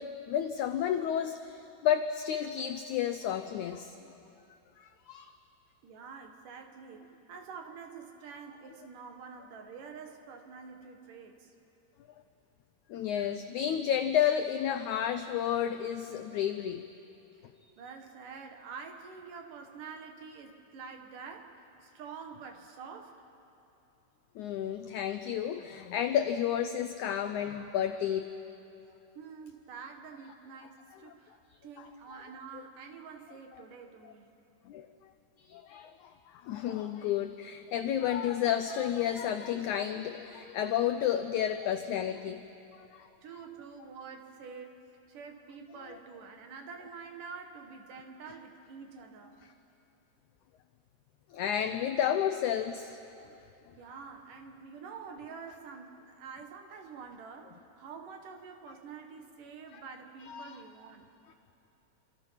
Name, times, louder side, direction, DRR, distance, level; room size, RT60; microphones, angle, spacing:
voice 1, 0.0-4.0 4.8-5.3 12.9-16.8 24.4-28.3 31.1-31.2 31.8-31.9 34.0-34.1 34.6-34.9 35.5-42.4 42.7-43.1 51.3-53.0 59.7-59.8 60.3-60.6, left 9 dB, 85° left, 8 dB, 1.7 m, -31 dB
voice 2, 5.8-11.5 17.8-23.2 29.2-34.3 43.2-49.4 53.8-61.1, right 5 dB, 65° right, 5 dB, 2.9 m, -47 dB
28.5 x 27.0 x 5.8 m, 2.9 s
omnidirectional pair, 4.3 m